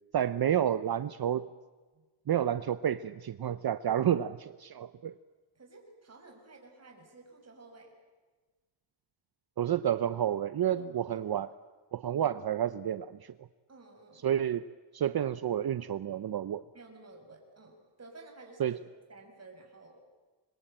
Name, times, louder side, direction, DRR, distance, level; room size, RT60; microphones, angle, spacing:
voice 1, 0.1-1.5 2.3-5.1 9.6-11.5 11.9-13.3 14.2-14.7 14.9-16.6 18.6-18.7, right 10 dB, 50° right, 13 dB, 0.7 m, -30 dB
voice 2, 5.5-7.9 10.7-11.2 13.7-14.3 16.7-18.8 19.1-20.0, right 3 dB, 30° right, 2 dB, 6.1 m, -53 dB
26.5 x 23.0 x 9.0 m, 1.3 s
wide cardioid pair, 125°, 50 cm